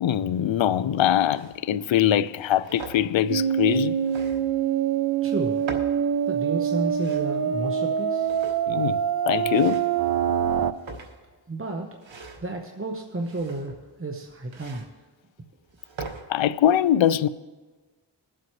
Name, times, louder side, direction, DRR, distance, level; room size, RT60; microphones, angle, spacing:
voice 1, 0.0-4.0 8.7-10.0 16.3-17.3, left 10 dB, 80° left, 0.5 m, -23 dB
sound 1, 1.3-1.6 2.3-3.0 4.0-4.6 5.4-6.0 6.7-7.3 8.2-8.8 9.5-10.0 10.6-11.3 11.9-12.5 13.2-13.9 14.5-14.9 15.6-16.2, right 4 dB, 85° right, 1.4 m, -41 dB
sound 2, 3.3-10.7, right 8 dB, 55° right, 0.6 m, -25 dB
voice 2, 5.2-5.6 6.3-8.3 11.5-12.0 12.4-14.8, right 2 dB, 30° right, 1.1 m, -32 dB
22.0 x 7.8 x 3.2 m
cardioid pair, 60°, 45 cm